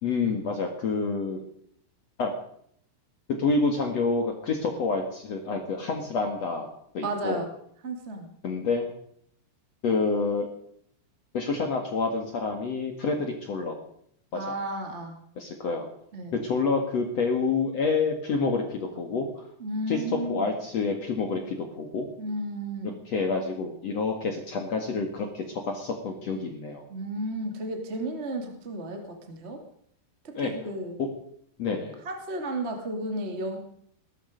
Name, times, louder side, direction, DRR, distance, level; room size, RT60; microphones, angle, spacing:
voice 1, 0.0-1.4 2.2-2.3 3.4-6.7 6.9-7.4 8.4-8.9 9.8-10.5 11.3-13.8 14.3-14.6 15.3-15.9 16.3-19.5 19.9-22.1 22.8-26.8 30.3-30.5 31.0-31.1 31.6-32.0, left 4 dB, 65° left, 3 dB, 1.6 m, -28 dB
voice 2, 7.0-7.5 7.8-8.3 14.3-15.2 16.1-16.3 19.6-20.5 22.2-22.9 26.9-29.6 30.2-31.0 32.0-33.6, right 1 dB, 35° right, 3 dB, 1.1 m, -33 dB
20.0 x 13.0 x 5.2 m, 0.68 s
omnidirectional pair, 5.9 m